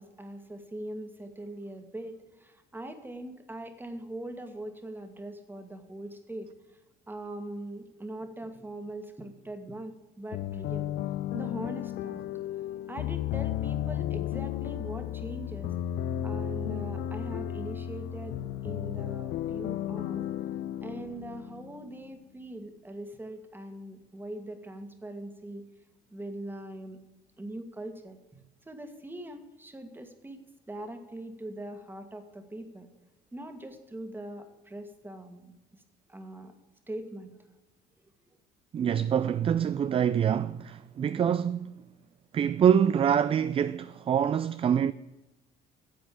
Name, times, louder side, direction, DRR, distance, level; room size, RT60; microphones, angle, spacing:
voice 1, 0.0-6.8 7.1-10.9 11.3-12.2 12.9-15.7 16.2-20.2 20.8-25.6 26.1-27.0 27.4-30.4 30.7-32.9 33.3-35.5 36.1-36.5 36.9-37.4, right 1 dB, 10° right, 1.7 m, -41 dB
sound 1, 10.3-22.0, left 11 dB, 75° left, 0.5 m, -34 dB
voice 2, 38.7-41.7 42.3-44.9, right 8 dB, 35° right, 0.4 m, -25 dB
10.5 x 7.7 x 8.4 m
cardioid pair, 110°, 17 cm